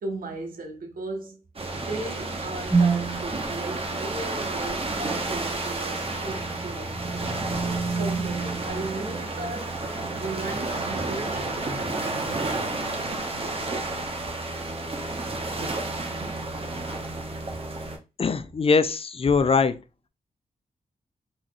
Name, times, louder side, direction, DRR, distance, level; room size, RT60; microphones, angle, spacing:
voice 1, 0.0-7.4 7.9-9.8 10.2-12.9, right 2 dB, 70° right, 1.1 m, -37 dB
sound 1, 1.6-18.0, right 2 dB, 40° right, 0.9 m, -31 dB
sound 2, 2.7-3.3 6.1-9.6, right 4 dB, 20° left, 1.4 m, -28 dB
voice 2, 18.2-19.7, left 5 dB, 40° left, 0.4 m, -21 dB
4.0 x 3.0 x 2.3 m
cardioid pair, 55°, 15 cm